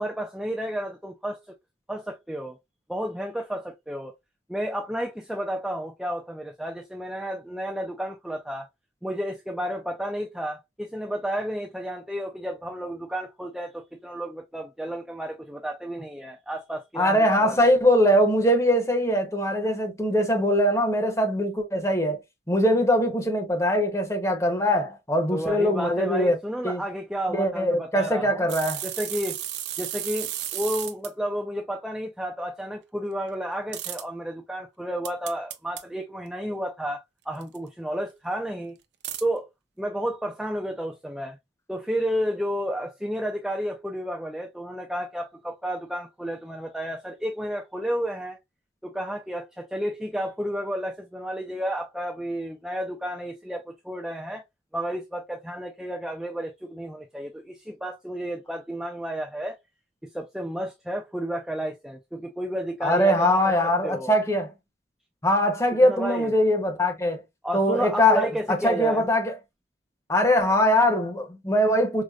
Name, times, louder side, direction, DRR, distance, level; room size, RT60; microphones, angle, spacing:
voice 1, 0.0-1.4 1.9-2.6 2.9-4.1 4.5-8.7 9.0-17.7 25.3-28.5 28.8-29.4 29.8-38.8 39.2-39.5 39.8-41.4 41.7-48.4 48.8-54.4 54.7-59.6 60.0-64.2 65.8-66.3 67.4-69.1, equal, ahead, 0.3 m, -31 dB
voice 2, 17.0-22.2 22.5-26.4 26.6-26.8 27.3-28.8 62.8-64.5 65.2-67.2 67.5-69.3 70.1-72.0, equal, 15° left, 0.8 m, -22 dB
sound 1, 28.5-31.1 33.7-34.0 35.0-35.8 37.4-37.6 39.0-39.2, right 12 dB, 75° right, 0.5 m, -33 dB
4.8 x 2.0 x 2.3 m
head